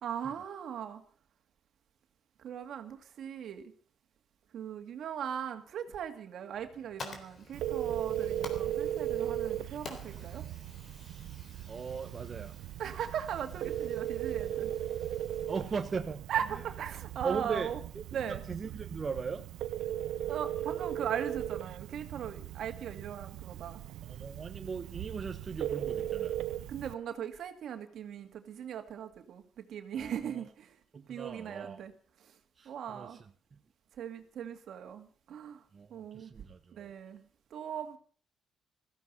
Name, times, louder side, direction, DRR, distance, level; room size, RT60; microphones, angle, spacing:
voice 1, 0.0-1.0 2.4-3.7 4.5-10.4 12.8-14.7 16.3-17.8 18.1-18.4 20.3-23.8 26.7-30.7 31.1-31.9 32.7-33.2 34.0-35.6 35.9-36.3 36.7-37.2 37.5-38.0, right 9 dB, 70° right, 2.2 m, -39 dB
Fire, 6.5-16.0, left 3 dB, 45° left, 3.7 m, -51 dB
Telephone, 7.5-26.9, right 11 dB, 85° right, 0.8 m, -37 dB
voice 2, 11.0-11.3 11.7-12.6 15.5-16.6 17.2-18.0 18.5-19.4 24.0-26.4 29.9-30.4 30.9-31.8 32.6-33.6 35.7-36.9, right 5 dB, 40° right, 1.1 m, -39 dB
16.0 x 14.5 x 5.6 m
cardioid pair, 90°, 0 cm